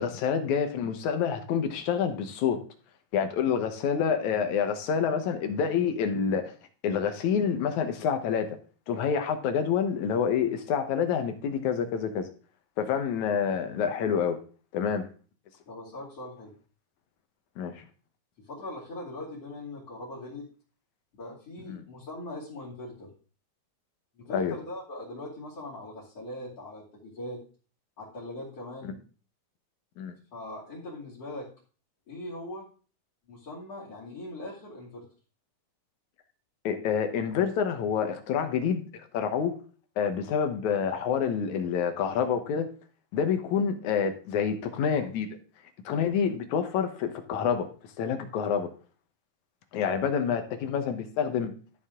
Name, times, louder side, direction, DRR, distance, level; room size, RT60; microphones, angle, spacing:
voice 1, 0.0-2.6 3.1-6.5 6.8-8.6 8.9-12.3 12.8-14.4 14.7-15.1 17.6-17.9 21.7-21.8 24.3-24.6 28.8-28.9 30.0-30.1 36.6-39.6 40.0-42.7 43.1-45.3 45.9-47.7 48.0-48.7 49.7-51.5, left 7 dB, 75° left, 7 dB, 2.5 m, -27 dB
voice 2, 15.7-16.5 18.4-20.5 21.2-23.1 24.2-27.4 28.0-29.0 30.3-31.5 32.1-32.7 33.3-35.1, left 1 dB, 55° left, -3 dB, 3.6 m, -41 dB
13.0 x 7.0 x 3.7 m, 0.39 s
omnidirectional pair, 3.4 m